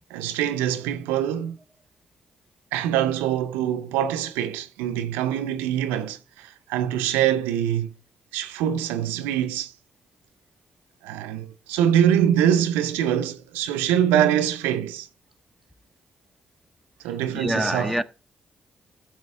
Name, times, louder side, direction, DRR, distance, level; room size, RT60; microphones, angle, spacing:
voice 1, 0.1-1.6 2.7-7.9 8.3-9.7 11.0-15.1 17.0-17.9, right 10 dB, 85° right, 0.6 m, -24 dB
voice 2, 17.0-18.0, equal, 5° left, 0.9 m, -27 dB
14.5 x 6.1 x 3.3 m
hypercardioid pair, 45°, 3 cm